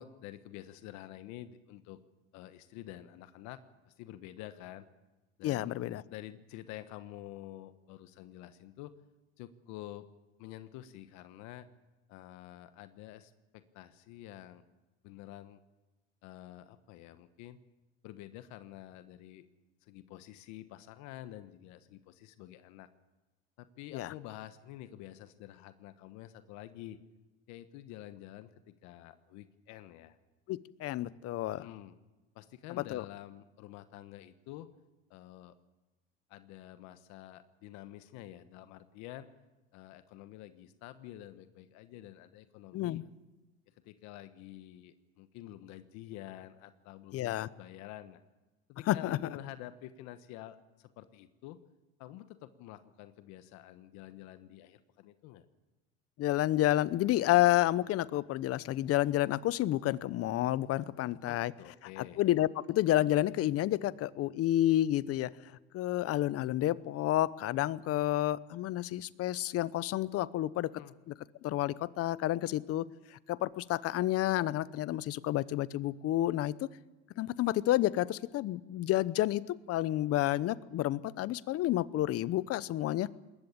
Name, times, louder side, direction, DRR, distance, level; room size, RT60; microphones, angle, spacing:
voice 1, 0.0-2.0 2.3-4.9 5.4-5.7 6.1-8.9 9.4-10.1 10.4-11.7 12.1-14.6 15.0-15.6 16.2-17.6 18.0-19.5 19.8-22.9 23.6-27.0 27.5-30.2 31.4-32.0 32.3-34.7 35.1-35.5 36.3-39.3 39.7-43.0 43.8-48.2 48.7-51.6 52.0-55.4 61.0-62.2 70.7-70.9, left 14 dB, 70° left, 11 dB, 1.3 m, -48 dB
voice 2, 5.4-6.0 23.9-24.1 30.5-31.7 32.7-33.0 42.7-43.0 47.1-47.5 48.9-49.2 56.2-61.5 62.0-65.3 65.7-70.7 71.1-71.2 71.4-76.7 77.2-83.1, left 14 dB, 50° left, 19 dB, 0.9 m, -30 dB
21.0 x 19.0 x 8.7 m, 1.1 s
supercardioid pair, 95°, 29 cm